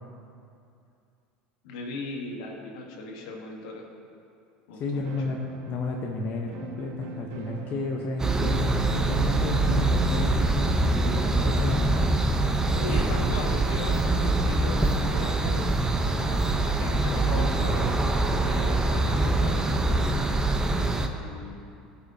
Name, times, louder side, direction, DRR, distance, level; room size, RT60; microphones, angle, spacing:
voice 1, 1.6-3.9 4.7-5.1 12.8-15.8 16.0-18.1 18.5-20.3 21.2-21.9, left 3 dB, 70° left, 1 dB, 1.3 m, -38 dB
voice 2, 4.7-5.4 5.7-12.1 12.7-13.4 16.3-16.6 16.9-17.6, left 3 dB, 45° left, 0 dB, 0.9 m, -32 dB
sound 1, 5.0-13.4, right 4 dB, 65° right, 0.7 m, -43 dB
sound 2, 8.2-21.1, right 2 dB, 15° right, 0.7 m, -24 dB
15.0 x 5.7 x 2.8 m, 2.6 s
hypercardioid pair, 80°, 4 cm